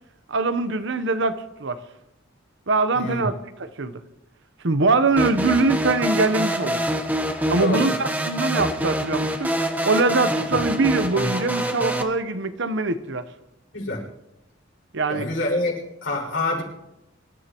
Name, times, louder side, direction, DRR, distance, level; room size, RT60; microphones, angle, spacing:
voice 1, 0.3-1.8 2.7-4.0 4.6-6.8 7.5-9.5 9.8-13.2 14.9-15.3, right 3 dB, 65° right, 0.9 m, -23 dB
voice 2, 2.9-3.3 7.6-7.9 13.7-14.0 15.1-15.7 16.0-16.6, left 2 dB, 85° left, 6.1 m, -26 dB
sound 1, 5.2-12.0, equal, 10° right, 1.1 m, -25 dB
25.5 x 14.0 x 3.0 m
head